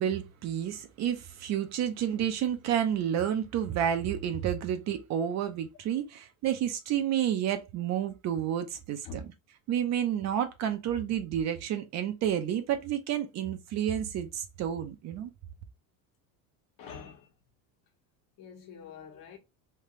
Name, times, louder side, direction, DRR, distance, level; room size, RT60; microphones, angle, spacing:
voice 1, 0.0-9.0 9.7-15.3, right 10 dB, 40° right, 0.6 m, -30 dB
voice 2, 16.8-17.3 18.4-19.4, left 4 dB, 50° left, 1.3 m, -45 dB
3.3 x 2.8 x 3.0 m
cardioid pair, 145°, 41 cm